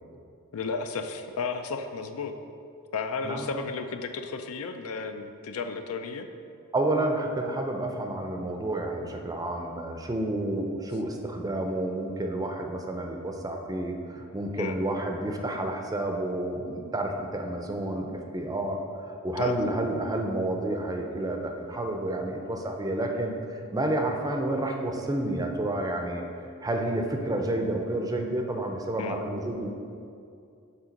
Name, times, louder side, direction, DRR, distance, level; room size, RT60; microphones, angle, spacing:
voice 1, 0.5-2.3 2.9-6.3 14.6-14.8 19.4-19.7 29.0-29.2, left 4 dB, 70° left, 7 dB, 0.4 m, -33 dB
voice 2, 6.7-18.8 19.1-26.2 26.6-29.7, right 1 dB, 15° right, 3 dB, 0.5 m, -30 dB
7.3 x 3.7 x 5.1 m, 2.5 s
head